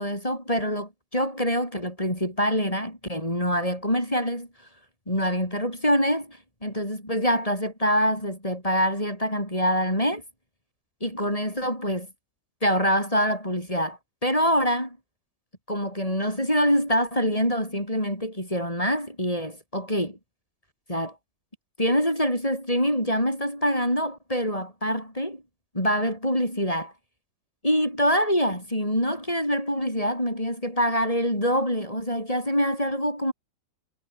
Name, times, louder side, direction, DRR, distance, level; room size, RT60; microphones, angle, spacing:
voice 1, 0.0-4.5 5.1-10.2 11.0-12.1 12.6-15.0 15.7-20.2 20.9-21.1 21.8-25.4 25.7-26.9 27.6-33.3, equal, 5° left, 7.0 m, -25 dB
omnidirectional pair, 5.5 m